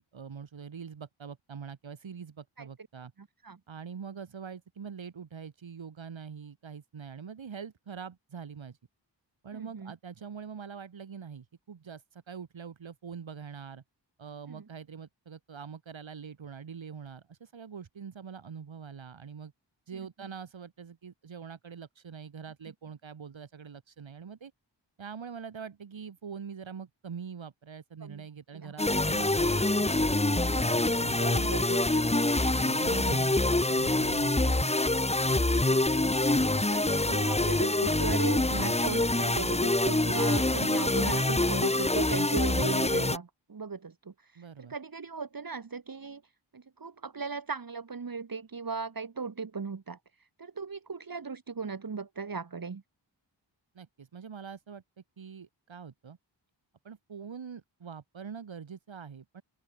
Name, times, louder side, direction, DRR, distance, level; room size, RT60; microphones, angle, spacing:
voice 1, 0.0-3.1 3.7-8.8 9.4-13.8 14.2-19.5 19.9-24.5 25.0-31.5 32.5-35.0 44.4-44.7 53.7-54.8 55.2-56.2 56.8-59.4, right 6 dB, 85° right, 2.0 m, -44 dB
voice 2, 3.2-3.6 9.5-9.9 14.5-14.6 19.9-20.1 28.0-28.2 28.5-28.7 31.2-32.0 32.8-33.3 36.5-46.2 46.5-50.0 50.4-52.8, right 5 dB, 50° right, 1.5 m, -37 dB
sound 1, 28.8-43.2, left 2 dB, 15° left, 1.2 m, -26 dB
open air
wide cardioid pair, 65°, 45 cm